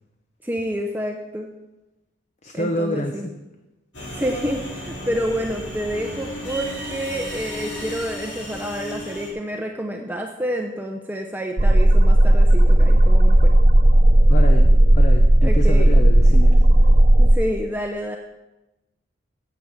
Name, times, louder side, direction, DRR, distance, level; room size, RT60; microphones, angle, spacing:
voice 1, 0.4-1.5 2.5-3.3 4.1-13.5 15.4-16.1 17.2-18.2, equal, 10° right, 2 dB, 0.7 m, -28 dB
voice 2, 2.4-3.2 14.3-16.6, left 1 dB, 40° left, 5 dB, 0.7 m, -27 dB
sound 1, 3.9-9.3, equal, 65° left, 3.5 m, -34 dB
sound 2, 11.6-17.4, right 1 dB, 45° right, 0.7 m, -13 dB
9.3 x 7.0 x 7.3 m, 1.0 s
head